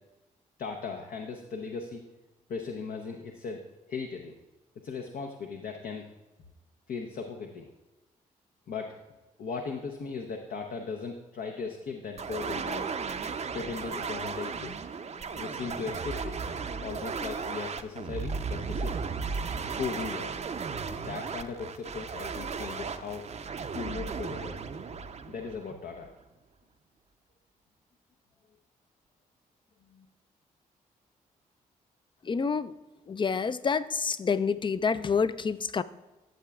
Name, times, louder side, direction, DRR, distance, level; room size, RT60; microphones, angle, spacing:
voice 1, 0.6-2.0 2.5-4.4 4.8-6.1 6.9-7.7 8.7-9.0 9.4-12.9 13.5-14.8 15.3-16.3 16.8-19.0 19.7-20.4 20.9-23.3 23.7-24.6 25.3-26.1 29.9-30.0, left 5 dB, 65° left, 3 dB, 0.7 m, -37 dB
sound 1, 12.2-26.1, right 5 dB, 40° right, 0.6 m, -35 dB
voice 2, 32.3-32.7 33.1-35.8, left 5 dB, 30° left, 15 dB, 0.4 m, -28 dB
11.5 x 7.5 x 2.3 m, 1.1 s
supercardioid pair, 45°, 16 cm